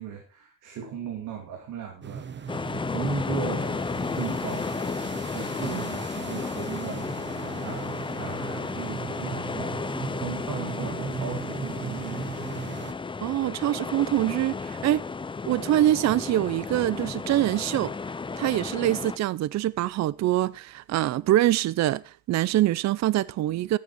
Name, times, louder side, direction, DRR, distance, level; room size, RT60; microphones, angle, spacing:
voice 1, 0.0-3.9 4.1-4.7 5.3-12.5, right 6 dB, 90° right, 2.6 m, -37 dB
sound 1, 2.0-12.9, right 6 dB, 35° right, 1.1 m, -38 dB
sound 2, 2.5-19.2, left 4 dB, 15° left, 0.5 m, -33 dB
voice 2, 13.2-15.0 15.5-17.9 18.4-23.8, right 14 dB, 65° right, 0.5 m, -24 dB
14.0 x 8.6 x 4.4 m
cardioid pair, 90°, 30 cm